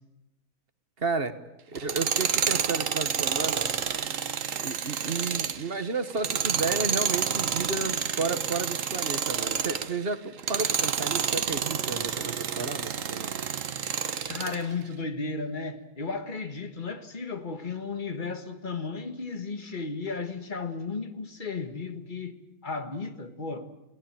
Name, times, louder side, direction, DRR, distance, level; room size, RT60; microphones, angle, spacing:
voice 1, 1.0-1.3 1.7-3.7 4.6-13.4, right 4 dB, 40° right, 1.4 m, -32 dB
Tools, 1.7-9.9 10.4-14.6, right 7 dB, 60° right, 1.4 m, -29 dB
voice 2, 14.3-23.7, left 4 dB, 35° left, 1.8 m, -34 dB
30.0 x 17.5 x 8.9 m
omnidirectional pair, 1.5 m